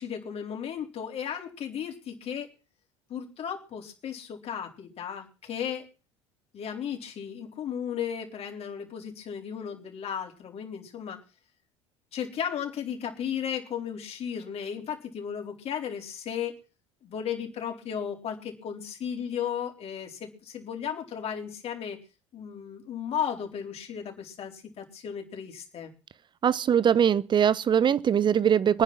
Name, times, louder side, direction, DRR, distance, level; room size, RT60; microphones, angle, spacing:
voice 1, 0.0-2.5 3.1-5.9 6.5-11.2 12.1-16.6 17.0-22.0 22.3-25.9 28.3-28.4, left 8 dB, 40° left, 4.2 m, -35 dB
voice 2, 26.4-28.8, right 8 dB, 30° right, 0.9 m, -22 dB
23.5 x 10.0 x 6.1 m
figure-of-eight pair, 60°, 15 cm